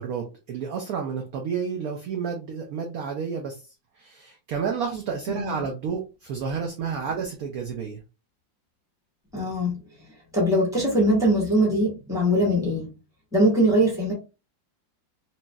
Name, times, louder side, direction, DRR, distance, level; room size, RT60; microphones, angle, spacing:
voice 1, 0.0-3.5 4.0-8.0, right 6 dB, 70° right, 0.8 m, -30 dB
voice 2, 5.3-5.6 9.3-9.8 10.3-12.9 13.3-14.1, equal, ahead, 1.2 m, -22 dB
3.0 x 2.8 x 2.2 m
omnidirectional pair, 2.0 m